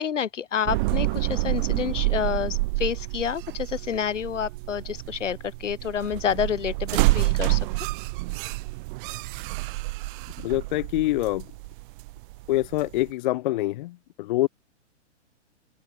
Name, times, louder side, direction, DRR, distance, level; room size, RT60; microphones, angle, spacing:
voice 1, 0.0-7.7, left 8 dB, 80° left, 4.2 m, -28 dB
sound 1, 0.7-13.1, right 23 dB, 45° right, 2.2 m, -28 dB
voice 2, 10.4-11.5 12.5-14.5, left 17 dB, 40° left, 0.5 m, -25 dB
open air
hypercardioid pair, 130°, 37 cm